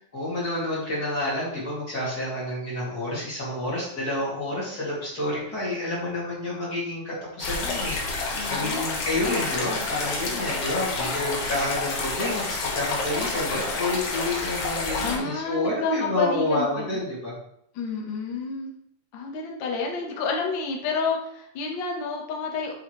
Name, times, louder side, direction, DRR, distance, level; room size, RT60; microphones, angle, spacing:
voice 1, 0.1-8.0 8.5-17.4, left 1 dB, 30° left, -7 dB, 2.8 m, -29 dB
sound 1, 7.4-15.2, left 3 dB, 70° left, 2.7 m, -29 dB
voice 2, 8.4-9.2 15.0-17.0 17.7-18.7 19.1-22.7, left 4 dB, 50° left, 0 dB, 1.4 m, -30 dB
7.8 x 6.5 x 3.2 m, 0.72 s
omnidirectional pair, 3.7 m